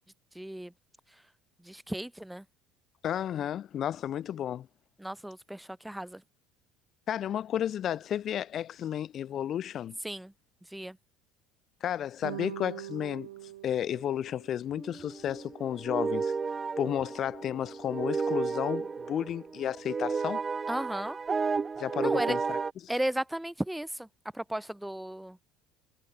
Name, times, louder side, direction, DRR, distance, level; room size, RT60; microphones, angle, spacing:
voice 1, 0.3-0.7 1.6-2.4 5.0-6.2 10.0-10.3 10.6-11.0 20.7-21.2 22.0-22.4 22.9-24.1 24.3-25.4, right 1 dB, 5° right, 4.2 m, -35 dB
voice 2, 3.0-4.7 7.1-10.0 11.8-13.3 13.6-16.3 16.8-20.4 21.8-22.6, left 10 dB, 45° left, 1.4 m, -32 dB
sound 1, 12.2-14.8, right 14 dB, 80° right, 1.2 m, -42 dB
sound 2, 14.7-22.7, right 5 dB, 25° right, 2.6 m, -33 dB
hypercardioid pair, 65°, 0 cm